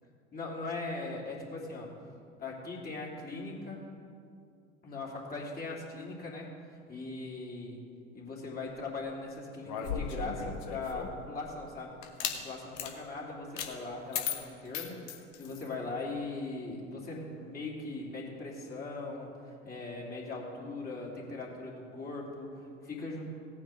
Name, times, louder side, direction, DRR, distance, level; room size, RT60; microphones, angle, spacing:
voice 1, 0.3-1.9 2.4-3.8 4.8-6.5 6.9-7.8 8.1-12.0 12.3-23.2, left 3 dB, 25° left, -4 dB, 3.1 m, -40 dB
sound 1, 9.6-11.2 12.0-12.4 12.7-12.9 13.6-13.7 14.1-15.7, left 7 dB, 50° left, 1.6 m, -36 dB
17.5 x 9.2 x 3.7 m, 2.4 s
figure-of-eight pair, 75°, 36 cm